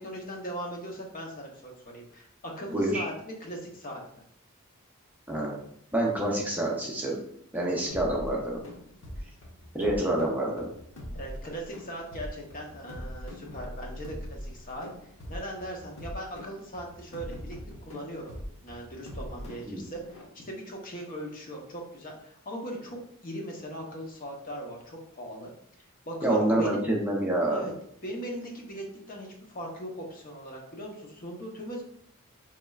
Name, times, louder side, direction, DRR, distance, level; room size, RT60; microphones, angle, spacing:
voice 1, 0.0-4.2 11.1-14.9 15.3-18.4 18.6-25.5 25.8-26.8 27.5-27.7 28.0-31.8, equal, 40° left, 0 dB, 0.7 m, -39 dB
voice 2, 2.7-3.0 5.3-5.6 5.9-7.2 7.5-8.6 9.7-10.7 19.7-19.8 26.2-27.7, right 1 dB, 10° right, -2 dB, 0.6 m, -27 dB
sound 1, 7.9-20.2, equal, 65° left, 1.1 m, -42 dB
4.9 x 3.1 x 2.3 m, 0.69 s
head